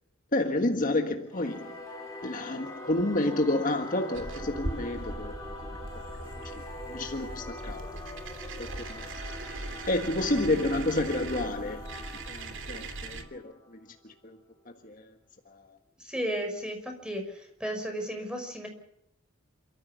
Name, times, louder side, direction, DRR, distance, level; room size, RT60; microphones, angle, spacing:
voice 1, 0.3-1.8 2.2-5.4 6.2-7.9 8.6-9.1 9.9-11.9 12.3-14.4 14.8-15.1 15.5-15.8, left 2 dB, 40° left, 1.6 m, -30 dB
Singing / Musical instrument, 1.3-14.2, left 2 dB, 15° left, 6.3 m, -44 dB
sound 1, 4.1-13.2, right 2 dB, 60° right, 2.8 m, -39 dB
voice 2, 16.1-17.2 17.6-18.7, right 1 dB, 5° right, 5.8 m, -33 dB
28.5 x 14.5 x 7.0 m
head